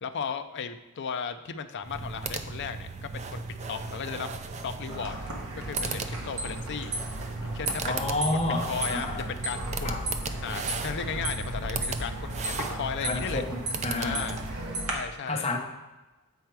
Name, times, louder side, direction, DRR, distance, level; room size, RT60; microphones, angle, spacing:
voice 1, 0.0-4.3 4.6-5.2 5.5-6.9 7.4-9.9 10.4-13.4 13.9-14.4 14.9-15.4, left 6 dB, 50° left, 8 dB, 0.4 m, -36 dB
sound 1, 1.8-14.8, right 4 dB, 30° right, 0.4 m, -37 dB
sound 2, 4.9-14.9, right 1 dB, 70° right, 1.3 m, -35 dB
voice 2, 7.8-9.3 9.8-10.0 13.0-14.3 15.3-15.6, left 2 dB, 30° left, 0 dB, 1.0 m, -30 dB
8.0 x 4.5 x 4.6 m, 1.1 s
head